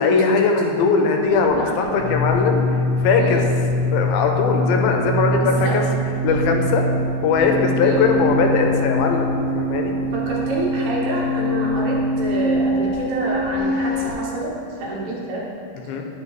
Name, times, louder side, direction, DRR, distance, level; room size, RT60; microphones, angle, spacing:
voice 1, 0.0-2.7 3.0-3.4 3.9-5.8 6.2-6.9 7.2-9.9 15.9-16.1, left 4 dB, 90° left, 3 dB, 2.5 m, -19 dB
sound 1, 1.3-14.1, equal, 65° left, 2.5 m, -23 dB
voice 2, 5.4-5.8 7.8-8.0 10.1-15.4, right 2 dB, 75° right, -4 dB, 2.9 m, -27 dB
9.7 x 5.9 x 3.1 m, 2.7 s
omnidirectional pair, 4.2 m